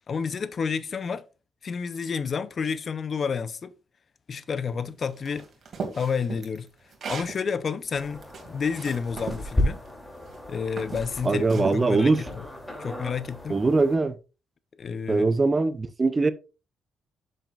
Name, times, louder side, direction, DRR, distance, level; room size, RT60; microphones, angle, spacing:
voice 1, 0.1-1.2 1.6-3.7 4.3-5.5 5.9-6.7 7.1-9.8 10.5-12.4 12.8-13.6 14.8-15.2, left 6 dB, 45° left, 0.6 m, -30 dB
sound 1, 5.2-7.4 7.9-9.4 10.2-10.4 10.8-11.8, right 5 dB, 55° right, 2.3 m, -36 dB
sound 2, 7.9-14.0, left 1 dB, 10° left, 2.8 m, -34 dB
voice 2, 11.2-12.2 13.5-14.2 15.1-16.3, right 3 dB, 25° right, 0.7 m, -22 dB
7.6 x 7.5 x 2.4 m
cardioid pair, 90°, 0 cm